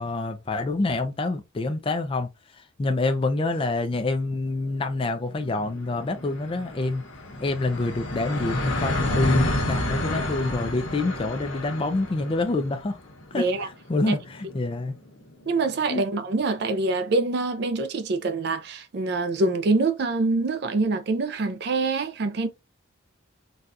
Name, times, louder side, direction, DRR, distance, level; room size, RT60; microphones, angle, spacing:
voice 1, 0.0-7.0 7.4-13.0 13.3-14.9 15.9-16.1, left 2 dB, 25° left, 0.4 m, -27 dB
sound 1, 4.3-15.6, left 1 dB, 85° left, 1.1 m, -31 dB
voice 2, 13.3-13.7 14.1-14.2 15.5-22.5, right 3 dB, 55° right, 0.4 m, -25 dB
4.0 x 2.3 x 2.6 m
head